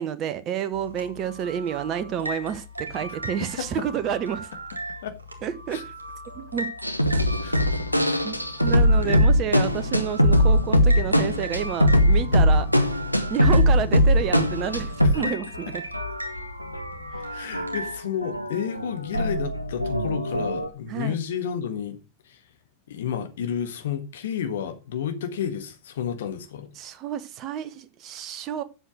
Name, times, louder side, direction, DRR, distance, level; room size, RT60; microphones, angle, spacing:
voice 1, 0.0-4.5 5.4-5.9 6.3-6.7 8.2-8.4 8.6-12.7 13.3-15.8 17.2-17.3 20.9-21.2 26.8-28.6, right 9 dB, 35° right, 0.9 m, -29 dB
sound 1, 0.7-18.0, equal, 80° right, 1.7 m, -38 dB
sound 2, 6.8-15.3 15.5-15.7 15.9-17.9 18.2-20.7, equal, 90° left, 0.9 m, -21 dB
voice 2, 7.9-8.2 9.0-9.2 15.2-15.3 17.3-22.0 22.2-22.4 22.9-26.7, left 8 dB, 60° left, 1.5 m, -31 dB
7.9 x 6.2 x 6.2 m
figure-of-eight pair, 90°, 0 cm